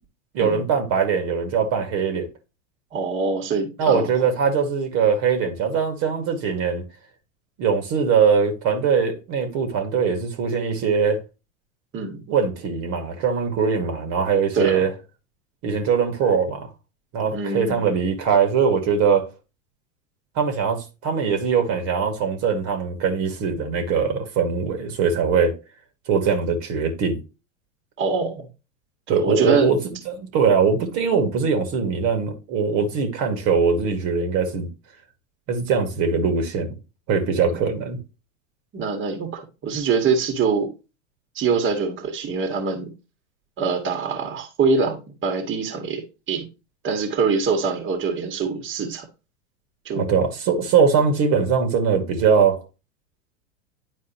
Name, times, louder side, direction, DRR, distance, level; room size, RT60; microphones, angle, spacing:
voice 1, 0.3-2.3 3.8-6.8 7.6-11.2 12.3-14.9 15.6-16.7 17.1-19.3 20.4-25.6 26.1-27.2 29.1-29.8 30.1-34.7 35.5-36.7 37.1-38.0 49.9-52.6, right 6 dB, 45° right, 2.0 m, -21 dB
voice 2, 2.9-4.1 11.9-12.2 14.5-14.8 17.3-17.8 28.0-28.5 29.1-29.7 37.4-37.6 38.7-40.7 41.4-42.9 43.6-46.5 46.8-49.1 49.9-50.1, right 5 dB, 30° right, 1.9 m, -24 dB
10.5 x 4.4 x 3.0 m
hypercardioid pair, 100°, 40 cm